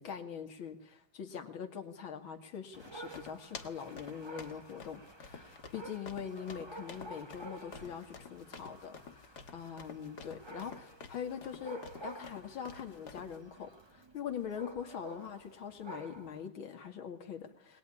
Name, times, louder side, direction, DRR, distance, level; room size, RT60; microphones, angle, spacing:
voice 1, 0.0-17.8, left 7 dB, 85° left, 5 dB, 2.7 m, -43 dB
Dog, 2.7-16.5, right 2 dB, 15° right, 1.3 m, -51 dB
sound 1, 2.8-13.4, left 5 dB, 55° left, 2.2 m, -50 dB
22.5 x 19.5 x 9.9 m, 0.80 s
omnidirectional pair, 2.1 m